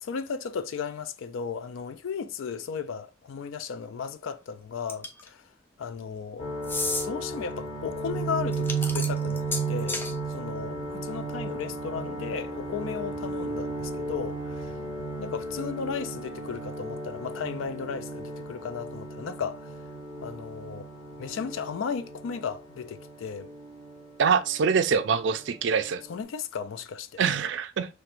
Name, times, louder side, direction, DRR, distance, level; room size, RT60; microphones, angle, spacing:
voice 1, 0.0-5.4 5.8-6.5 7.0-10.0 10.3-14.7 15.2-19.7 20.2-20.9 21.2-23.5 26.1-27.2, left 6 dB, 85° left, 0.4 m, -35 dB
sound 1, 4.9-5.3 6.6-7.1 8.5-10.1, left 2 dB, 10° left, 0.3 m, -31 dB
sound 2, 6.4-24.9 25.2-26.2, right 3 dB, 30° left, 1.1 m, -34 dB
voice 2, 24.2-26.0 27.2-28.0, right 6 dB, 65° right, 0.4 m, -24 dB
4.3 x 2.1 x 2.5 m
head